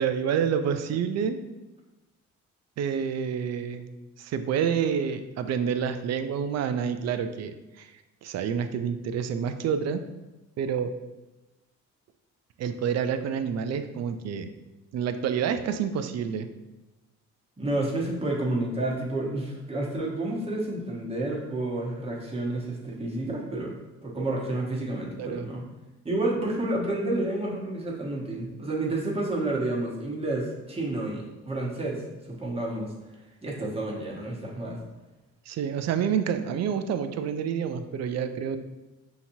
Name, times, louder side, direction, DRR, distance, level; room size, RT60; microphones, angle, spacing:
voice 1, 0.0-1.4 2.8-3.9 4.2-7.9 8.2-10.0 10.6-10.9 12.6-14.5 14.9-16.5 25.2-25.5 35.5-38.6, right 7 dB, 60° right, 9 dB, 0.4 m, -28 dB
voice 2, 17.6-25.6 26.0-32.0 32.3-32.9 33.4-34.8, right 2 dB, 20° right, -4 dB, 1.1 m, -30 dB
5.7 x 2.9 x 2.7 m, 1.1 s
cardioid pair, 90°, 30 cm